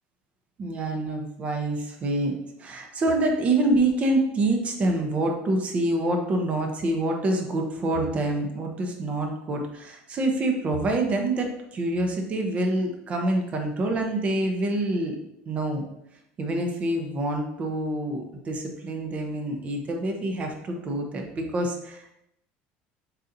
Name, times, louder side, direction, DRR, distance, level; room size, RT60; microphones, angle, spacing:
voice 1, 0.6-15.2 15.5-15.8 16.4-22.1, right 2 dB, 30° right, 3 dB, 0.7 m, -26 dB
4.1 x 3.8 x 2.6 m, 0.82 s
cardioid pair, 135°, 4 cm